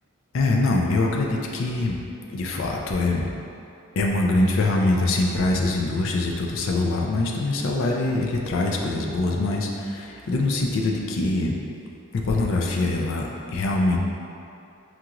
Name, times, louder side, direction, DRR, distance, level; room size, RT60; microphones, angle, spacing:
voice 1, 0.3-2.0 2.3-3.3 4.0-11.6 12.1-14.0, left 2 dB, 65° left, 0 dB, 0.4 m, -23 dB
5.8 x 2.5 x 2.9 m, 2.7 s
head